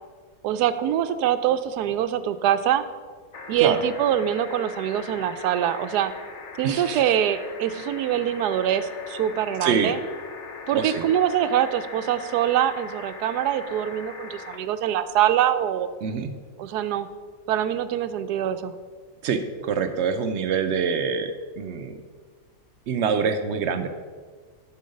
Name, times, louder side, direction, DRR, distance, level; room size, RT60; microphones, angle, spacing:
voice 1, 0.4-2.8 3.5-6.1 6.6-10.0 10.7-15.9 16.6-17.1 17.5-18.7, right 10 dB, 90° right, 12 dB, 1.1 m, -24 dB
sound 1, 3.3-14.6 16.0-16.1, left 4 dB, 50° left, 1.2 m, -40 dB
voice 2, 6.6-7.0 9.6-9.9 10.7-11.0 16.0-16.3 19.2-21.9 22.9-23.9, right 6 dB, 60° right, 9 dB, 0.7 m, -25 dB
11.5 x 4.7 x 5.2 m, 1.5 s
omnidirectional pair, 1.7 m